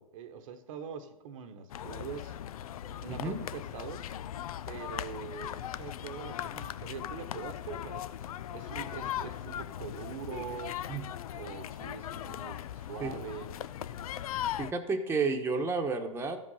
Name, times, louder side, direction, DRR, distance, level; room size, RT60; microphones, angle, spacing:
voice 1, 0.0-2.3 2.9-4.1 4.7-8.0 8.5-10.8 11.3-13.5, right 7 dB, 65° right, 1.2 m, -43 dB
sound 1, 1.7-14.7, left 11 dB, 75° left, 0.5 m, -39 dB
voice 2, 14.6-16.4, right 4 dB, 15° right, 1.1 m, -31 dB
14.0 x 5.3 x 5.6 m
hypercardioid pair, 115°, 18 cm